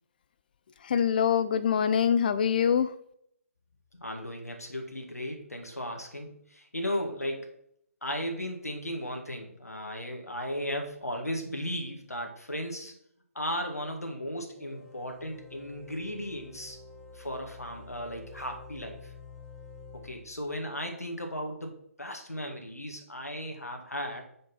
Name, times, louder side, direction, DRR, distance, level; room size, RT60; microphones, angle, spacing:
voice 1, 0.8-2.9, left 8 dB, 35° left, 13 dB, 0.6 m, -24 dB
voice 2, 3.9-7.6 8.0-12.9 13.4-16.8 17.1-19.1 19.9-24.2, equal, 80° left, 3 dB, 1.9 m, -36 dB
sound 1, 14.5-20.7, left 4 dB, ahead, 1.5 m, -49 dB
5.5 x 5.3 x 5.5 m, 0.71 s
figure-of-eight pair, 140°, 8 cm